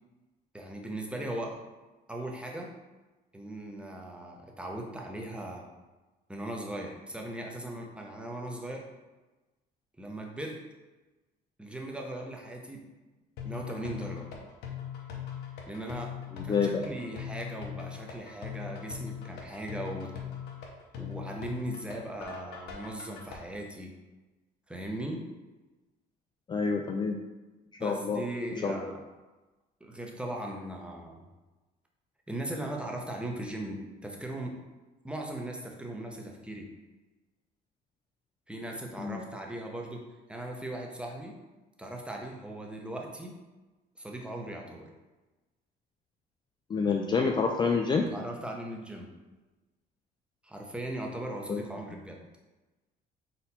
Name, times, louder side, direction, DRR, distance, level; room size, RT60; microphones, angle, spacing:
voice 1, 0.5-1.6 2.1-2.7 3.3-5.7 6.3-8.9 10.0-10.6 11.6-12.9 13.4-14.3 15.7-16.2 16.4-20.1 21.0-23.9 24.7-25.3 27.8-29.0 29.8-31.3 32.3-34.6 35.0-36.7 38.5-40.0 40.3-41.4 41.8-43.4 44.0-44.9 48.0-49.1 50.4-52.2, right 1 dB, 5° right, 0 dB, 0.7 m, -38 dB
sound 1, 13.4-23.4, left 9 dB, 75° left, 0.8 m, -41 dB
voice 2, 16.5-16.9 26.5-27.2 27.8-28.2 28.6-28.9 39.0-39.2 46.7-48.1 51.5-51.6, left 5 dB, 25° left, 2 dB, 0.3 m, -28 dB
4.1 x 2.7 x 4.1 m, 1.1 s
cardioid pair, 110°, 17 cm